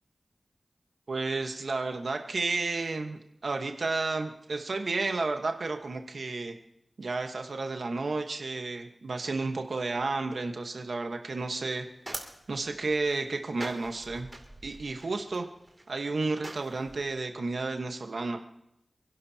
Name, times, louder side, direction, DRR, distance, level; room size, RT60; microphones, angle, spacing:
voice 1, 1.1-6.5 7.0-11.9 12.5-14.3 14.6-15.5 15.9-18.4, right 3 dB, 80° right, 4 dB, 1.2 m, -32 dB
sound 1, 11.4-17.0, right 1 dB, 30° right, 2.7 m, -45 dB
29.0 x 11.5 x 2.8 m, 0.78 s
wide cardioid pair, 60°, 0 cm